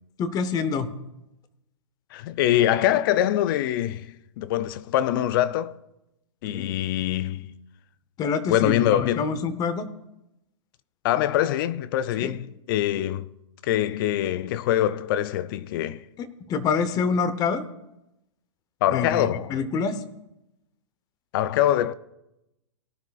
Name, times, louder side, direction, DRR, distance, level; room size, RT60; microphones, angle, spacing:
voice 1, 0.2-0.9 6.5-6.7 8.2-9.9 12.2-12.3 16.5-17.6 18.9-19.9, left 5 dB, 25° left, 0.9 m, -26 dB
voice 2, 2.1-5.7 6.4-7.5 8.5-9.3 11.0-13.3 13.6-16.1 18.8-19.6 21.3-21.9, left 12 dB, 45° left, 0.4 m, -24 dB
18.5 x 10.5 x 2.4 m
hypercardioid pair, 135°, 16 cm